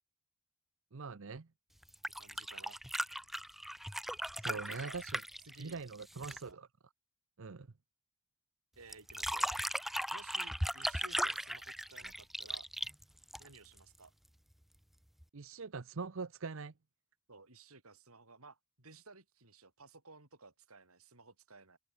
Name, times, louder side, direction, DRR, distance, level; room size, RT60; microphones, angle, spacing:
voice 1, 0.9-1.5 4.4-5.2 5.6-6.7 7.4-7.7 15.3-16.7, right 4 dB, 65° right, 0.8 m, -43 dB
sound 1, 1.8-6.5 8.9-13.8 15.2-15.3, equal, ahead, 0.6 m, -38 dB
voice 2, 2.2-2.8 4.5-5.0 5.4-5.8 6.1-6.6 8.8-9.5 10.1-12.7 13.4-14.1 17.3-21.8, right 3 dB, 90° right, 5.6 m, -56 dB
open air
head